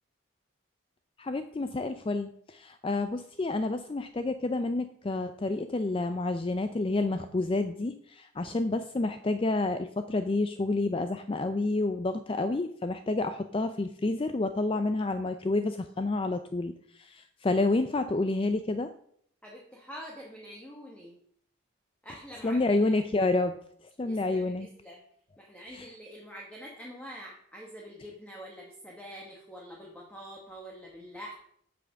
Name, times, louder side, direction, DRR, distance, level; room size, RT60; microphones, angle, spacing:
voice 1, 1.2-16.7 17.0-18.9 22.4-23.6 24.0-24.7 25.7-25.8, left 2 dB, 25° left, 9 dB, 0.4 m, -29 dB
voice 2, 19.4-21.2 22.0-23.1 24.0-25.0 25.4-31.3, equal, 5° left, -2 dB, 1.2 m, -46 dB
8.5 x 5.9 x 6.3 m, 0.65 s
head